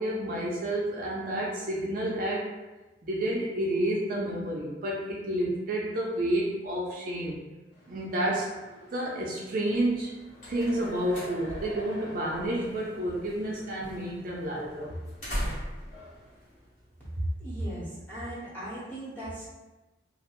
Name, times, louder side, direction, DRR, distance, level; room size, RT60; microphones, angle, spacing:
voice 1, 0.0-2.5 3.0-7.4 7.9-8.5 8.9-10.2 10.5-14.9, right 1 dB, 45° right, -3 dB, 0.4 m, -30 dB
sound 1, 7.7-16.7, equal, 85° left, 0.9 m, -48 dB
sound 2, 9.9-17.4, equal, 45° left, 0.9 m, -41 dB
voice 2, 17.1-19.5, right 1 dB, 10° left, -11 dB, 0.9 m, -35 dB
2.3 x 2.1 x 2.9 m, 1.1 s
head